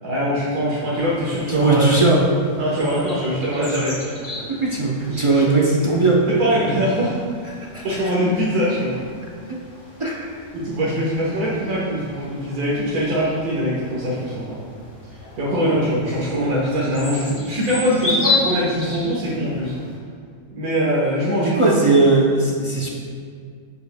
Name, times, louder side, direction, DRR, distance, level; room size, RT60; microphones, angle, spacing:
voice 1, 0.0-2.0 2.6-4.0 4.2-4.4 5.1-5.4 6.3-7.2 7.8-9.0 10.5-14.6 15.1-19.7 20.5-22.0, equal, 75° right, -7 dB, 1.7 m, -22 dB
sound 1, 0.9-20.0, left 3 dB, 55° left, 1.9 m, -33 dB
voice 2, 1.5-2.2 4.5-6.3 7.7-7.9 9.5-9.6 10.0-10.2 21.4-22.9, right 3 dB, 40° right, -3 dB, 0.4 m, -18 dB
13.0 x 5.5 x 2.2 m, 2.1 s
omnidirectional pair, 1.6 m